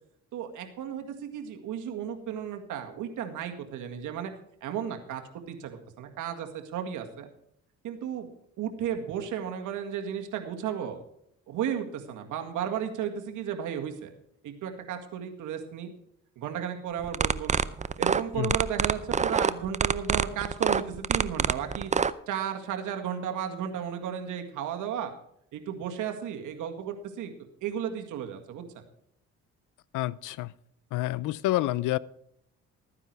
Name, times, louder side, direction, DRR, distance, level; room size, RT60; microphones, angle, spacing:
voice 1, 0.3-4.3 4.6-7.3 7.8-8.3 8.6-11.0 11.5-14.1 14.4-15.9 16.4-17.6 18.0-21.9 22.3-25.1 25.5-27.3 27.6-28.8, right 9 dB, 85° right, 2.0 m, -34 dB
sound 1, 17.0-22.1, right 5 dB, 25° right, 0.6 m, -25 dB
voice 2, 29.9-30.5 30.9-32.0, left 16 dB, 85° left, 0.5 m, -28 dB
14.5 x 9.8 x 4.7 m
cardioid pair, 90°, 30 cm